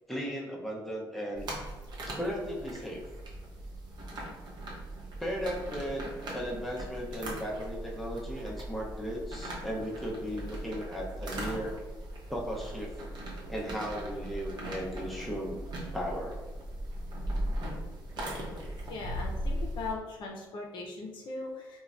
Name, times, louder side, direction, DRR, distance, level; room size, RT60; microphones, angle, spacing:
voice 1, 0.1-1.5 2.2-3.0 5.2-11.7 12.3-12.9 13.5-15.6 15.9-16.4, equal, ahead, -3 dB, 0.7 m, -36 dB
sound 1, 1.3-19.9, right 1 dB, 55° right, 0.8 m, -39 dB
voice 2, 18.9-21.8, left 3 dB, 65° left, 0 dB, 0.5 m, -39 dB
3.0 x 2.2 x 2.5 m, 1.2 s
supercardioid pair, 70°, 9 cm